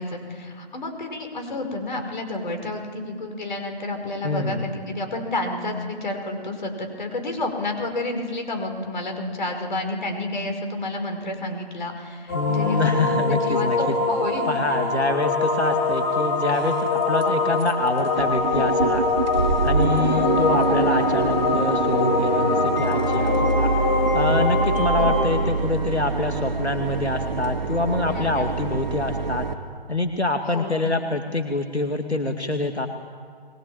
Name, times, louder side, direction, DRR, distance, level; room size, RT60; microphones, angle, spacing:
voice 1, 0.0-14.5 20.0-20.4 24.9-25.2 28.1-28.5 30.5-31.0, left 2 dB, 45° left, 5 dB, 5.6 m, -30 dB
voice 2, 4.2-4.7 12.3-13.9 14.5-19.1 19.6-23.7 24.1-29.5 29.9-32.9, left 2 dB, 85° left, 5 dB, 2.4 m, -25 dB
sound 1, 12.3-25.3, left 3 dB, 25° left, 4.7 m, -24 dB
sound 2, 15.9-16.0 16.5-16.9 17.2-17.3 17.6-17.7 18.0-29.5, right 4 dB, 45° right, 1.9 m, -26 dB
23.0 x 19.0 x 8.9 m, 2.1 s
figure-of-eight pair, 150°, 32 cm